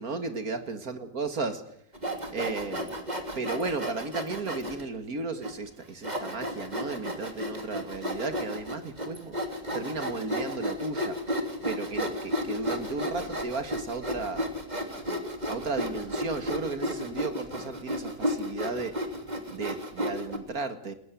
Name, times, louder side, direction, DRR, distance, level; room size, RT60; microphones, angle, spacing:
voice 1, 0.0-1.6 2.3-2.9 3.4-9.3 9.7-11.2 11.6-14.5 15.5-18.9 19.5-20.9, right 3 dB, 75° right, 8 dB, 2.5 m, -34 dB
Sawing, 1.9-4.8 5.4-5.5 6.0-20.4, equal, 25° right, 3.2 m, -33 dB
28.5 x 20.0 x 7.7 m, 0.68 s
omnidirectional pair, 1.6 m